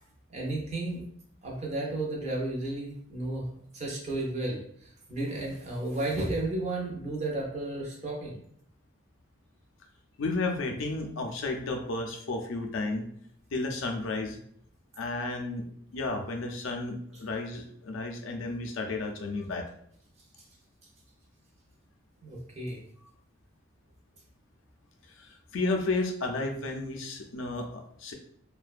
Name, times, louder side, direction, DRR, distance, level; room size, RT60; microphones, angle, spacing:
voice 1, 0.3-1.0 1.4-3.5 3.7-8.4 22.2-22.8, right 2 dB, 30° right, -2 dB, 0.6 m, -33 dB
voice 2, 10.2-13.0 13.5-14.4 15.0-15.6 15.9-19.6 25.2-25.3 25.5-28.1, left 2 dB, 70° left, 3 dB, 0.4 m, -32 dB
2.5 x 2.2 x 2.4 m, 0.66 s
head